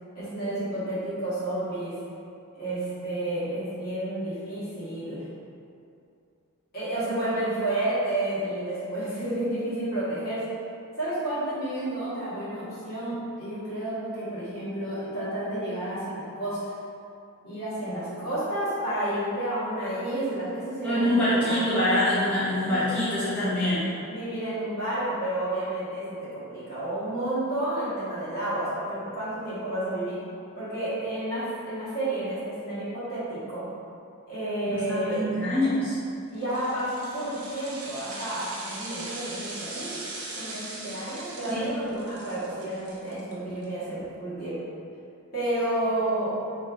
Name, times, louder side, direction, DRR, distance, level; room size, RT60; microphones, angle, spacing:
voice 1, 0.1-2.0 2.5-5.3 6.7-10.5 11.0-16.8 17.4-21.7 24.0-30.2 30.6-33.7 34.3-35.3 36.3-40.1 40.3-44.6 45.3-46.4, right 1 dB, 45° left, -12 dB, 1.5 m, -31 dB
voice 2, 20.8-23.8 34.7-36.0 41.5-41.7, left 1 dB, 10° left, -15 dB, 0.8 m, -25 dB
sound 1, 36.3-43.6 44.0-44.1, right 2 dB, 80° right, 0.8 m, -40 dB
3.1 x 2.7 x 3.6 m, 2.6 s
head